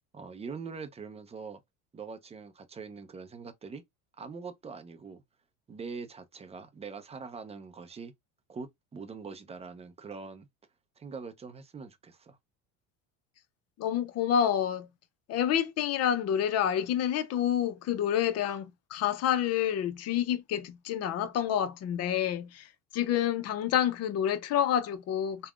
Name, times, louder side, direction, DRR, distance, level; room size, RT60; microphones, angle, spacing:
voice 1, 0.1-1.6 1.9-3.8 4.2-5.2 5.7-8.1 8.5-10.5 11.0-12.4, right 5 dB, 15° right, 0.5 m, -43 dB
voice 2, 13.8-14.9 15.3-22.7 22.9-25.5, left 9 dB, 45° left, 0.6 m, -28 dB
3.4 x 2.2 x 2.3 m
supercardioid pair, 110°, 37 cm